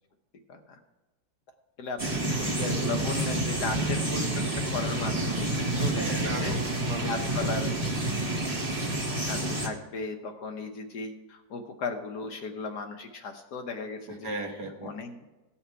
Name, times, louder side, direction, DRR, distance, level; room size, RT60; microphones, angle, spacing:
voice 1, 0.5-0.8 1.8-6.5 7.0-7.7 8.4-8.8 9.3-14.3 14.8-15.2, left 4 dB, 65° left, 5 dB, 1.3 m, -36 dB
sound 1, 2.0-9.7, right 1 dB, 20° right, 1.5 m, -29 dB
voice 2, 5.8-7.1 7.4-7.6 14.1-14.9, right 3 dB, 60° right, 2 dB, 1.7 m, -37 dB
16.5 x 5.8 x 4.6 m, 1.1 s
omnidirectional pair, 2.0 m